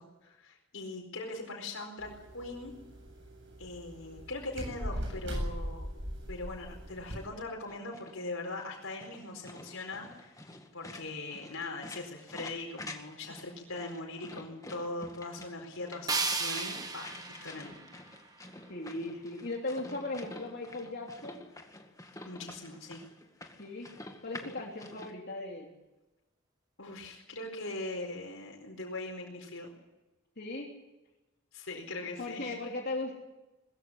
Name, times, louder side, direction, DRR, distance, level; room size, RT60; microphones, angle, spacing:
voice 1, 0.0-2.7 3.6-5.9 6.3-17.8 22.2-23.0 26.8-29.7 31.5-32.5, left 2 dB, 75° left, 1 dB, 4.5 m, -41 dB
sound 1, 2.0-7.2, equal, 60° right, 8.0 m, -39 dB
sound 2, 7.7-25.1, left 2 dB, 15° left, 1.9 m, -48 dB
sound 3, 16.1-19.1, right 4 dB, 20° right, 1.6 m, -35 dB
voice 2, 18.7-21.5 23.6-23.9 24.2-25.7 30.4-30.7 32.2-33.1, left 2 dB, 50° left, 0 dB, 3.3 m, -37 dB
21.5 x 15.0 x 9.9 m, 1.0 s
head